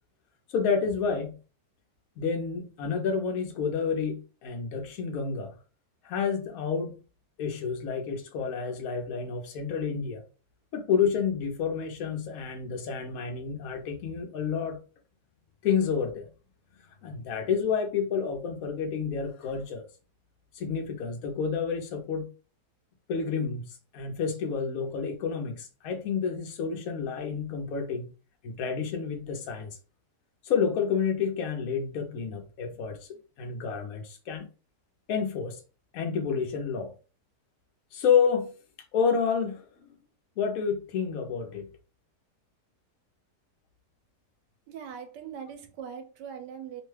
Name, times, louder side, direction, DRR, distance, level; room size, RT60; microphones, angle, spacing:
voice 1, 0.5-1.4 2.2-5.5 6.0-7.0 7.4-10.2 10.7-14.8 15.6-16.3 17.0-19.8 20.5-22.3 23.1-28.1 28.4-29.8 30.4-33.0 33.4-34.5 35.1-35.6 35.9-36.9 37.9-38.5 38.9-40.0 40.4-41.6, left 6 dB, 65° left, 1.0 m, -29 dB
voice 2, 44.7-46.8, right 7 dB, 85° right, 1.2 m, -41 dB
3.0 x 2.2 x 3.2 m
omnidirectional pair, 1.9 m